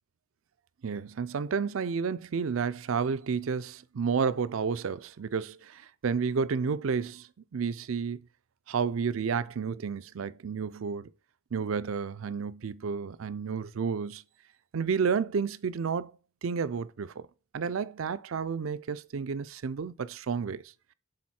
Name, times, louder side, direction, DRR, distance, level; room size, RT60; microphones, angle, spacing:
voice 1, 0.8-7.3 7.5-8.2 8.7-11.1 11.5-14.2 14.7-16.1 16.4-17.2 17.5-20.6, right 5 dB, 80° right, 0.5 m, -31 dB
10.5 x 4.0 x 4.3 m
head